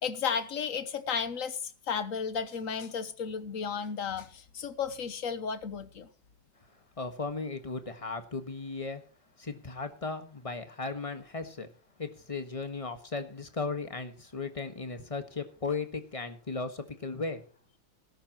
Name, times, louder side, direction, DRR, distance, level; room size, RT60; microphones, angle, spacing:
voice 1, 0.0-6.1, left 6 dB, 50° left, 1.2 m, -33 dB
voice 2, 7.0-9.0 9.4-11.7 12.0-17.4, left 4 dB, 20° left, 1.3 m, -36 dB
19.0 x 11.5 x 3.0 m
omnidirectional pair, 2.1 m